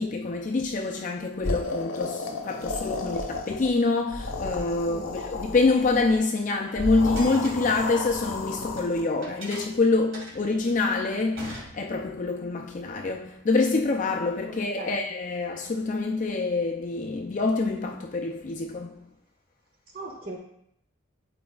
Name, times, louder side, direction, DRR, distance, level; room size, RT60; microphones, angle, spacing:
voice 1, 0.0-19.1, left 3 dB, 40° left, 0.4 m, -26 dB
sound 1, 1.4-3.7 4.0-6.2 6.7-9.0, left 2 dB, 80° left, 1.0 m, -33 dB
sound 2, 7.2-8.9 9.2-12.3, right 1 dB, 75° right, 2.3 m, -42 dB
voice 2, 14.4-14.9 19.9-20.4, right 2 dB, 45° right, 1.5 m, -38 dB
11.5 x 4.2 x 2.3 m
head